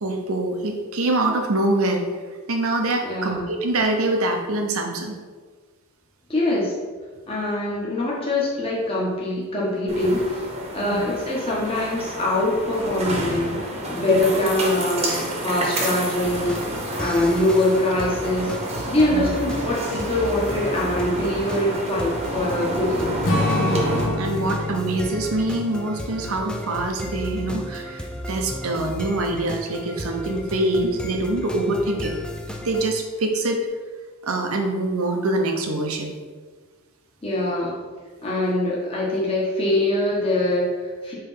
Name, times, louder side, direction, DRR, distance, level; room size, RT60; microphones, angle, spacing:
voice 1, 0.0-2.0 2.5-5.2 10.9-11.1 14.1-14.2 19.1-19.3 23.5-32.1 32.6-33.6 34.2-36.1, right 2 dB, 75° right, 3 dB, 0.9 m, -24 dB
voice 2, 3.0-3.5 6.3-6.7 7.3-10.4 10.7-13.5 13.9-16.6 17.0-18.5 18.9-23.2 37.2-37.8 38.2-41.1, left 1 dB, 25° left, -6 dB, 1.3 m, -23 dB
sound 1, 9.9-24.1, right 1 dB, 25° right, 1.1 m, -29 dB
sound 2, 16.2-32.9, left 1 dB, 5° left, 0.4 m, -34 dB
Strum, 23.2-27.9, left 2 dB, 60° left, 0.9 m, -28 dB
5.5 x 3.3 x 5.7 m, 1.4 s
head